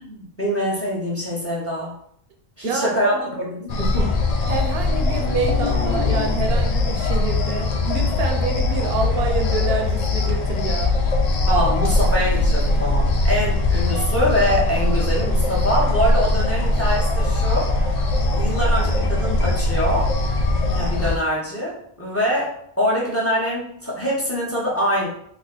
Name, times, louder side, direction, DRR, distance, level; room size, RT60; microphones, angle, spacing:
voice 1, 0.0-1.9 2.6-3.1 3.5-4.1 11.5-17.7 18.3-20.1 20.7-25.1, equal, 15° left, -5 dB, 0.8 m, -24 dB
voice 2, 2.6-3.4 4.5-11.0, right 4 dB, 75° right, 3 dB, 0.8 m, -27 dB
sound 1, 3.7-21.2, left 2 dB, 55° left, 0.5 m, -21 dB
3.3 x 2.2 x 3.7 m, 0.68 s
omnidirectional pair, 1.0 m